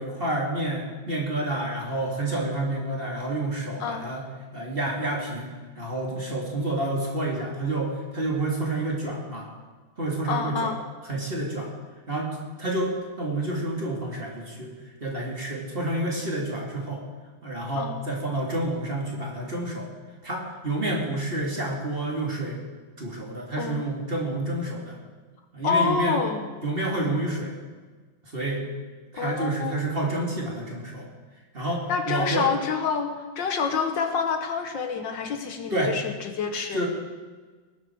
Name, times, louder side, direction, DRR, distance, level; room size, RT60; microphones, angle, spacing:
voice 1, 0.0-4.2 4.5-9.5 10.0-10.7 11.1-11.7 12.1-12.3 12.6-17.0 17.4-19.9 20.2-22.6 23.0-25.0 25.5-26.2 26.6-27.5 28.2-28.7 29.1-31.1 31.5-32.5 35.7-35.9 36.7-36.9, right 2 dB, 25° right, -1 dB, 2.7 m, -29 dB
voice 2, 10.3-10.8 17.7-17.9 23.6-23.8 25.6-26.4 29.2-29.8 31.9-36.9, left 5 dB, 65° left, 5 dB, 1.8 m, -27 dB
19.5 x 12.0 x 4.7 m, 1.4 s
omnidirectional pair, 2.2 m